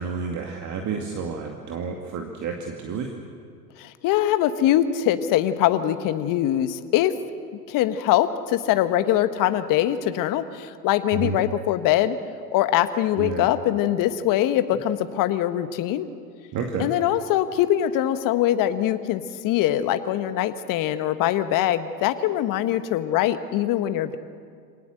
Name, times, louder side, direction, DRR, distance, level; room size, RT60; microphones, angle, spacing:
voice 1, 0.0-3.1 11.1-11.4 13.2-13.5 16.5-16.9, right 5 dB, 35° right, 2 dB, 2.3 m, -30 dB
voice 2, 3.8-7.1 7.7-12.2 12.5-16.1 16.8-24.2, left 12 dB, 40° left, 11 dB, 1.4 m, -23 dB
26.5 x 18.5 x 7.9 m, 2.2 s
hypercardioid pair, 95°, 49 cm